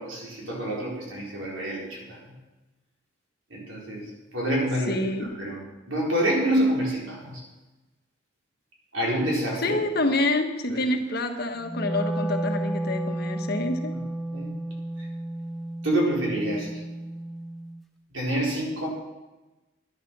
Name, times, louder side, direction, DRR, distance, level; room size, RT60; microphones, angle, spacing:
voice 1, 0.0-2.2 3.5-5.6 5.9-7.4 8.9-9.8 10.0-10.1 10.7-10.8 13.9-14.0 14.3-14.5 15.0-15.1 15.8-16.8 18.1-18.9, right 1 dB, 75° right, -3 dB, 4.4 m, -27 dB
voice 2, 4.9-5.3 9.6-13.9, left 2 dB, 50° left, 5 dB, 1.3 m, -27 dB
Wind instrument woodwind instrument, 11.6-17.8, right 1 dB, ahead, 0.6 m, -32 dB
11.5 x 11.0 x 6.1 m, 1.1 s
head